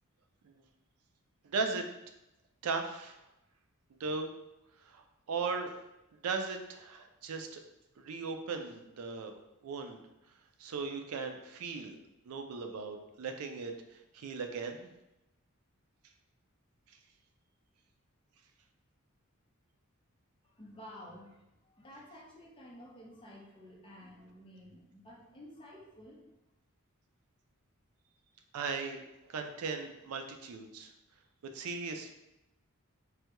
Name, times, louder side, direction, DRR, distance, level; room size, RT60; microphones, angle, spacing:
voice 1, 1.4-1.9 2.6-3.2 4.0-4.3 4.8-5.8 6.2-7.6 8.0-9.3 9.6-10.0 10.6-12.0 12.3-13.7 14.1-14.9 28.5-30.9 31.5-32.1, right 4 dB, 80° right, 5 dB, 0.4 m, -37 dB
voice 2, 20.4-26.2, equal, 25° left, -2 dB, 0.6 m, -52 dB
3.3 x 2.2 x 2.9 m, 0.90 s
head